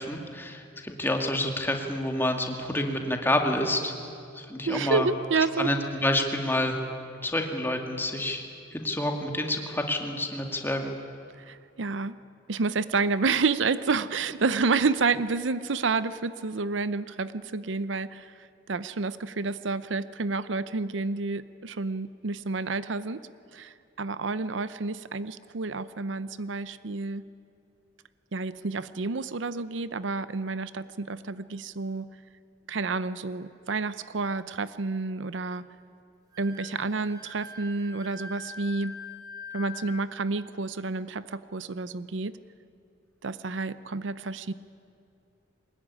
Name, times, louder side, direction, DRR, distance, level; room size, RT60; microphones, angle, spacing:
voice 1, 0.0-3.9 4.3-5.1 5.6-6.8 7.2-8.4 8.7-10.9, left 1 dB, 10° left, 3 dB, 2.1 m, -28 dB
voice 2, 4.7-5.7 11.4-12.2 12.5-18.3 18.7-23.2 23.5-27.2 28.3-32.1 32.7-35.7 36.4-38.9 39.5-42.4 43.2-44.5, right 4 dB, 75° right, 15 dB, 0.7 m, -29 dB
Wind instrument woodwind instrument, 36.3-40.0, left 3 dB, 20° right, 3.8 m, -43 dB
23.0 x 20.0 x 9.8 m, 2.5 s
head